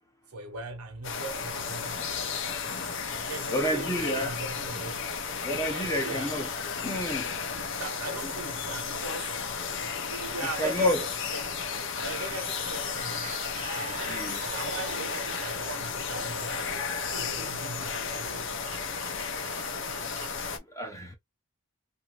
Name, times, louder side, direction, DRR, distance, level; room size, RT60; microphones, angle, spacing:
voice 1, 0.3-2.1 3.2-5.1 5.6-6.3 7.6-9.4 10.0-11.4 12.0-13.3 13.7-16.7 17.1-18.5, right 2 dB, 85° right, 1.0 m, -40 dB
sound 1, 1.0-20.6, left 6 dB, 55° left, 0.6 m, -34 dB
voice 2, 3.5-4.3 5.4-6.5 6.8-7.3 10.6-11.0 14.1-14.4 16.2-16.3 20.7-21.1, left 1 dB, 15° left, 0.7 m, -29 dB
sound 2, 10.6-15.8, right 5 dB, 35° right, 0.5 m, -44 dB
sound 3, 14.5-20.4, right 2 dB, 60° right, 0.8 m, -45 dB
2.8 x 2.6 x 2.8 m
head